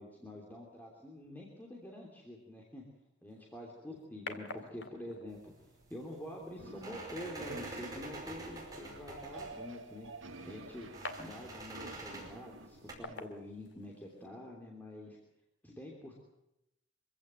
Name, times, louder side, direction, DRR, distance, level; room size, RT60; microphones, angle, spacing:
voice 1, 0.0-2.8 3.2-5.5 5.9-10.1 10.5-10.9 11.2-15.2 15.6-16.1, left 1 dB, 10° left, -1 dB, 3.1 m, -47 dB
sound 1, 3.3-14.3, left 3 dB, 70° left, 2.0 m, -52 dB
sound 2, 5.3-12.9, right 2 dB, 20° right, 5.4 m, -48 dB
sound 3, 6.6-13.1, right 2 dB, 90° right, 1.4 m, -50 dB
24.5 x 15.5 x 9.0 m, 0.86 s
head